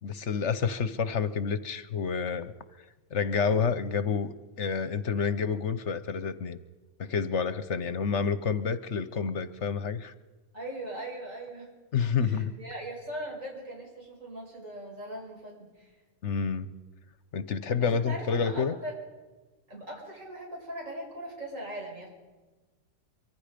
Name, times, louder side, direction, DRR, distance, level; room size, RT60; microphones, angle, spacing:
voice 1, 0.0-2.5 3.1-6.6 7.0-10.1 11.9-12.5 16.2-16.7 17.3-18.7, left 6 dB, 60° left, 13 dB, 1.2 m, -29 dB
voice 2, 10.5-11.7 12.2-16.0 17.8-19.0 19.7-22.1, right 1 dB, 65° right, -3 dB, 6.7 m, -40 dB
25.5 x 24.0 x 5.2 m, 1.3 s
omnidirectional pair, 1.5 m